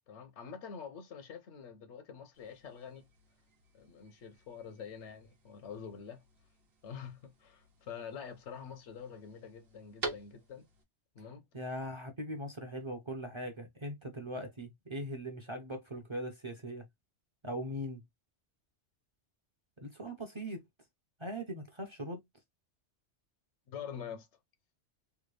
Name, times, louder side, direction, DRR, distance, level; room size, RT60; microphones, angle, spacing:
voice 1, 0.1-3.1 3.7-6.2 6.8-10.7 11.1-11.4 23.7-24.3, left 7 dB, 85° left, 1.0 m, -46 dB
sound 1, 2.3-10.8, right 3 dB, 60° right, 1.1 m, -48 dB
voice 2, 11.5-16.8 17.4-18.0 19.8-20.6 21.2-22.2, equal, 35° right, 0.6 m, -40 dB
3.4 x 2.2 x 3.1 m
omnidirectional pair, 1.2 m